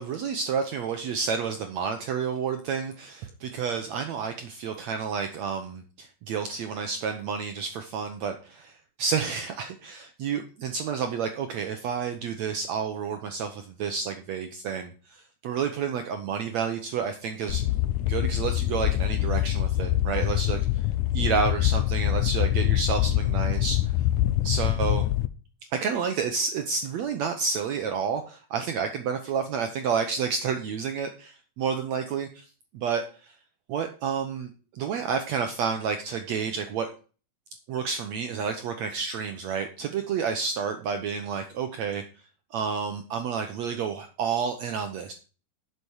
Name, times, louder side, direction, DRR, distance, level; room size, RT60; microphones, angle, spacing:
voice 1, 0.0-8.7 9.0-17.6 18.1-20.8 21.1-23.8 24.4-25.0 25.7-32.4 32.7-33.3 33.7-36.9 37.7-42.0 42.5-45.1, right 6 dB, 80° right, 7 dB, 1.5 m, -30 dB
sound 1, 17.5-25.3, left 14 dB, 80° left, 1.8 m, -25 dB
10.0 x 6.9 x 6.4 m, 0.38 s
omnidirectional pair, 4.4 m